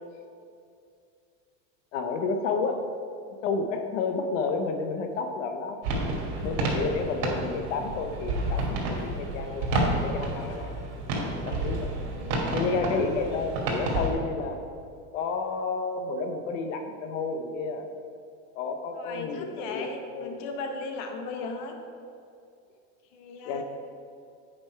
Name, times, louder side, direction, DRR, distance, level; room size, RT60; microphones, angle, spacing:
voice 1, 1.9-2.9 3.4-5.8 6.4-10.7 11.2-12.0 12.5-14.6 15.1-17.9 18.5-20.5 23.4-23.6, left 4 dB, 85° left, 6 dB, 0.8 m, -31 dB
sound 1, 5.8-14.1, right 2 dB, 75° right, 2.1 m, -30 dB
voice 2, 12.0-12.6 18.9-21.8 23.1-23.6, left 3 dB, 50° left, 4 dB, 0.9 m, -37 dB
8.6 x 5.4 x 4.5 m, 2.4 s
supercardioid pair, 155°, 37 cm